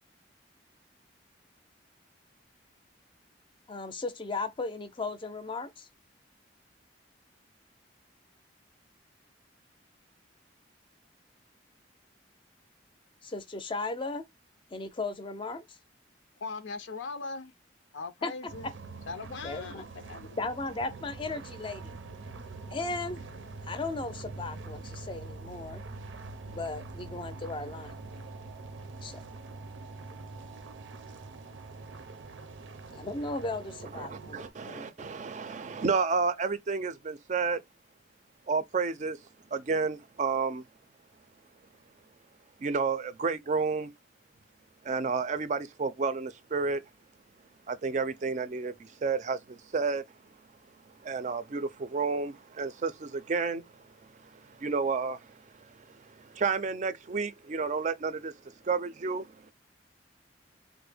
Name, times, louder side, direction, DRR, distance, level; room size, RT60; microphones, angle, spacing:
voice 1, 3.7-5.9 13.2-14.2 14.7-15.8 18.2-18.3 19.4-19.8 20.4-22.0 22.7-23.2 23.6-25.8 26.5-27.9 29.0-29.2 32.9-35.1, left 3 dB, 25° left, 0.5 m, -36 dB
voice 2, 16.4-17.5 17.9-18.7 19.1-20.4, left 4 dB, 85° left, 0.5 m, -39 dB
sound 1, 18.5-34.5, right 3 dB, 90° right, 0.5 m, -44 dB
voice 3, 33.9-37.6 38.5-39.2 39.5-40.6 42.6-43.9 44.8-46.8 47.7-50.0 51.0-53.6 54.1-58.3 58.6-59.5, right 4 dB, 40° right, 0.4 m, -31 dB
3.5 x 2.1 x 3.3 m
head